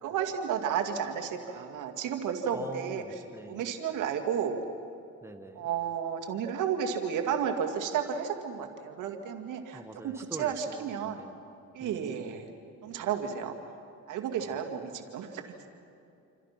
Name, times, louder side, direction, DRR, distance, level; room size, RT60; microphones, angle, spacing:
voice 1, 0.0-3.0 3.5-4.6 5.6-11.2 11.7-12.5 12.8-13.5 14.1-15.4, right 8 dB, 85° right, 4 dB, 2.3 m, -32 dB
voice 2, 2.5-3.6 5.2-5.7 9.7-11.4 11.8-12.4 14.4-14.6, right 1 dB, 10° right, 6 dB, 1.8 m, -44 dB
28.0 x 26.5 x 6.0 m, 2.6 s
cardioid pair, 90°, 30 cm